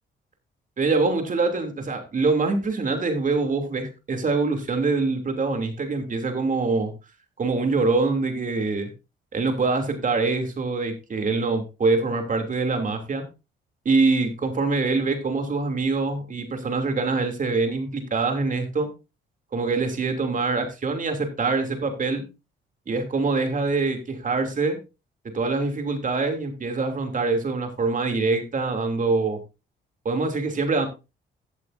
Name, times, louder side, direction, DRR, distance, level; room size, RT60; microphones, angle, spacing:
voice 1, 0.8-6.9 7.4-8.9 9.3-13.2 13.8-18.9 19.5-22.2 22.9-24.8 25.3-29.4 30.0-30.9, right 3 dB, 40° right, 5 dB, 3.1 m, -24 dB
15.5 x 8.3 x 2.7 m, 0.28 s
cardioid pair, 90°, 20 cm